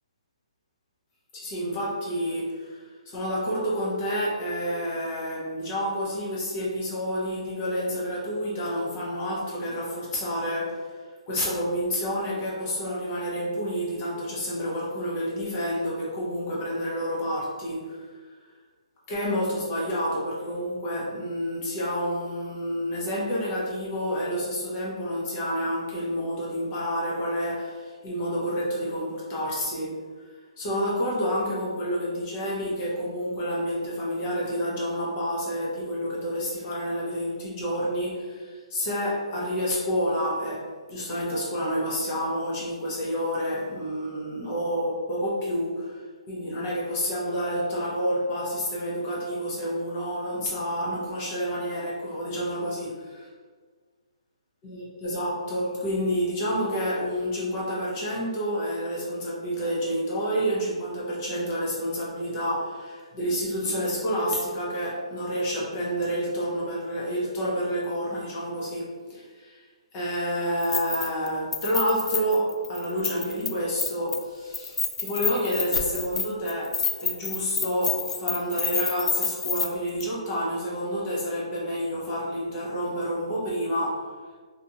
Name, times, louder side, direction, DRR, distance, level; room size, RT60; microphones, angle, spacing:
voice 1, 1.3-18.3 19.1-30.0 30.6-53.3 54.6-69.6 69.9-76.8 77.0-84.1, equal, 20° left, -5 dB, 0.5 m, -29 dB
Keys jangling, 70.6-71.3 71.5-73.5 73.8-74.2 74.5-79.7 80.0-80.1, left 5 dB, 85° left, 0.3 m, -28 dB
2.5 x 2.2 x 2.7 m, 1.5 s
hypercardioid pair, 170°, 3 cm